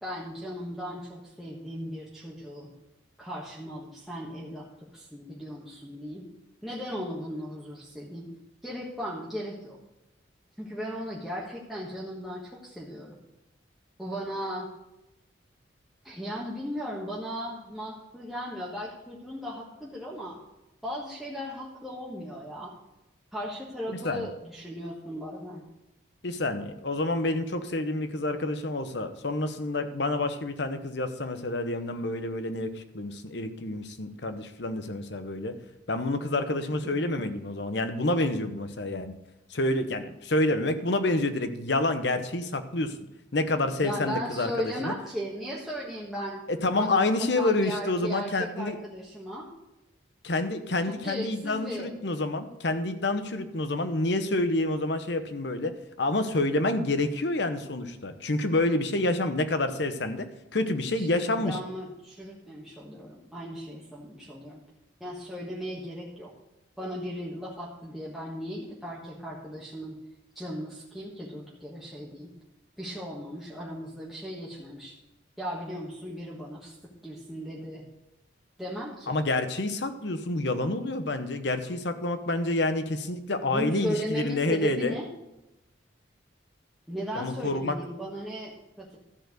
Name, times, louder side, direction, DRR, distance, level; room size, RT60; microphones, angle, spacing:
voice 1, 0.0-2.7 3.2-4.7 4.9-6.2 6.6-8.3 8.6-9.8 10.6-13.2 14.0-14.7 16.0-20.4 20.8-22.7 23.3-25.6 43.8-46.4 46.8-49.5 51.0-51.9 60.9-64.6 65.0-66.3 66.8-70.0 70.3-72.3 72.8-74.9 75.4-76.7 77.0-77.8 78.6-79.2 83.5-85.1 86.9-89.0, equal, ahead, -6 dB, 1.3 m, -37 dB
voice 2, 23.9-24.3 26.2-35.6 35.9-39.1 39.5-43.0 43.3-44.9 46.5-48.8 50.2-55.7 56.0-60.2 60.5-61.6 79.1-84.9 87.1-87.7, left 2 dB, 60° left, 9 dB, 0.9 m, -28 dB
13.0 x 4.5 x 7.9 m, 0.95 s
head